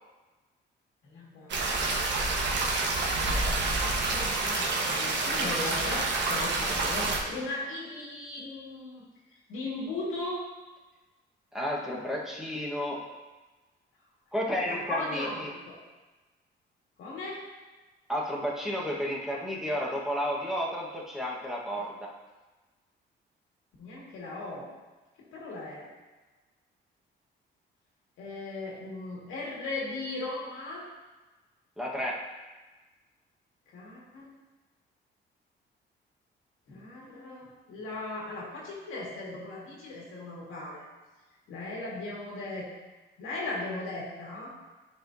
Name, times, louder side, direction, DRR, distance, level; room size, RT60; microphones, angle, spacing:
voice 1, 1.0-1.9 4.0-9.0 9.3-10.5 14.6-15.8 17.0-17.4 21.7-21.8 23.8-24.7 25.3-25.9 28.2-30.9 33.7-34.3 36.7-40.8 41.5-42.7 43.2-44.5, left 2 dB, 85° left, -4 dB, 2.0 m, -37 dB
sound 1, 1.5-7.2, right 3 dB, 65° right, 1.1 m, -28 dB
voice 2, 11.5-13.1 14.3-15.5 18.1-22.1 31.8-32.3, equal, ahead, -5 dB, 1.3 m, -32 dB
10.0 x 4.4 x 2.7 m, 1.2 s
cardioid pair, 90°, 20 cm